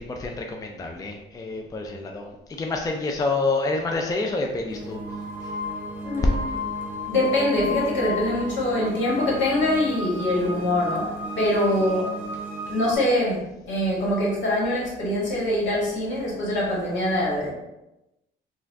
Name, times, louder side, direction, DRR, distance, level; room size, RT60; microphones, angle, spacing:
voice 1, 0.0-5.0 5.4-5.5, left 3 dB, 20° left, 2 dB, 0.4 m, -28 dB
sound 1, 4.7-13.0, equal, 10° right, 1.0 m, -33 dB
voice 2, 6.0-6.4 7.1-12.1 12.7-17.5, left 1 dB, 70° left, -4 dB, 1.5 m, -24 dB
4.1 x 2.3 x 2.7 m, 0.94 s
cardioid pair, 90°, 20 cm